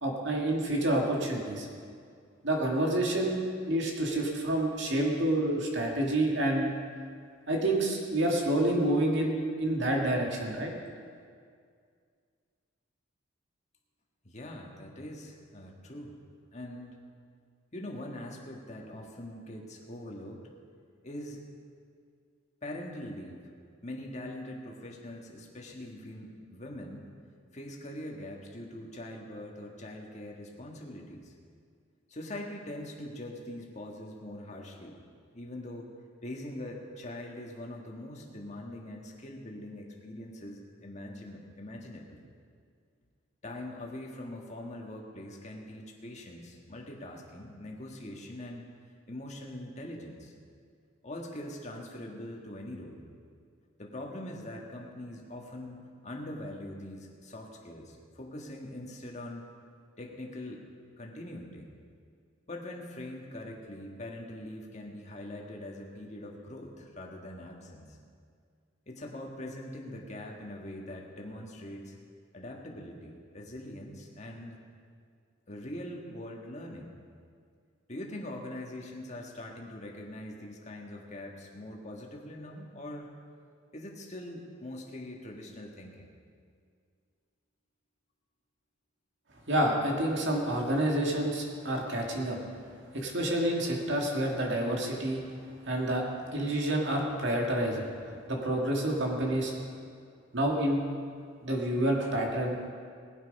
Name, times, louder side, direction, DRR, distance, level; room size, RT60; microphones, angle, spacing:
voice 1, 0.0-1.7 2.4-3.4 3.7-6.7 7.5-9.3 9.6-10.7 89.5-92.4 92.9-95.2 95.7-96.0 96.3-97.8 98.3-99.5 100.3-100.8 101.4-102.6, right 1 dB, 60° right, 0 dB, 2.2 m, -28 dB
voice 2, 14.2-16.1 16.5-16.9 17.7-20.5 21.0-21.4 22.6-23.5 23.8-27.1 27.5-31.3 32.1-35.0 35.3-35.9 36.2-42.2 43.4-48.6 49.1-50.3 51.0-53.0 53.8-55.8 56.0-59.5 60.0-60.6 61.0-61.7 62.5-68.0 68.9-71.9 72.3-74.6 75.5-76.9 77.9-83.1 83.7-86.1, left 1 dB, 35° left, 0 dB, 1.7 m, -42 dB
20.0 x 8.2 x 5.4 m, 2.2 s
head